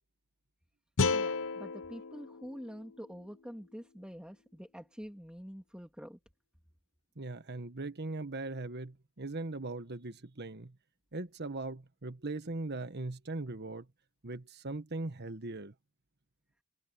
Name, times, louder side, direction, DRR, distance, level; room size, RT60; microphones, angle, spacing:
sound 1, 1.0-4.1, left 4 dB, 60° left, 0.8 m, -34 dB
voice 1, 1.1-6.2, equal, 5° right, 3.2 m, -46 dB
voice 2, 7.2-10.8 11.1-13.9 14.2-15.7, right 2 dB, 50° right, 1.4 m, -39 dB
head